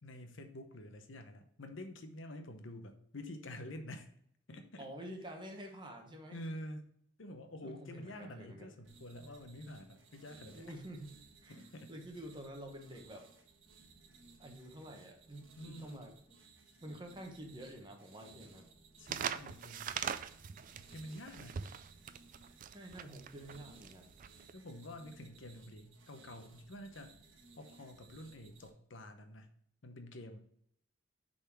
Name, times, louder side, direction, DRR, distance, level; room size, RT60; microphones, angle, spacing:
voice 1, 0.0-4.1 4.5-4.9 6.3-6.8 7.2-10.7 11.5-11.9 15.6-16.0 16.7-16.8 19.0-20.0 20.8-21.7 24.5-27.2 27.6-29.5 29.8-30.4, left 1 dB, 75° left, 7 dB, 0.9 m, -48 dB
voice 2, 4.8-6.4 7.6-8.7 10.5-11.1 11.4-11.6 11.9-13.3 14.4-16.1 16.8-18.7 22.7-24.1, right 1 dB, 25° right, 2 dB, 1.2 m, -48 dB
sound 1, 8.8-28.7, right 4 dB, 70° right, 1.4 m, -61 dB
sound 2, 19.1-24.5, right 8 dB, 45° right, 0.3 m, -41 dB
6.6 x 4.1 x 4.6 m, 0.68 s
head